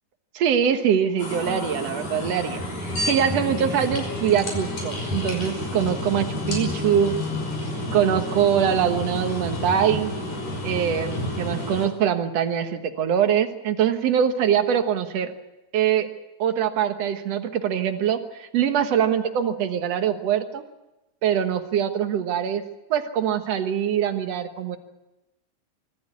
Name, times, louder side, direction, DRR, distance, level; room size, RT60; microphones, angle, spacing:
voice 1, 0.3-2.6 3.1-7.1 7.9-10.1 10.6-15.3 15.7-16.1 16.4-20.6 21.2-22.6 22.9-24.8, right 8 dB, 60° right, 7 dB, 1.7 m, -23 dB
sound 1, 1.2-11.9, left 1 dB, 60° left, 7.1 m, -30 dB
25.0 x 14.0 x 9.5 m, 0.98 s
omnidirectional pair, 4.6 m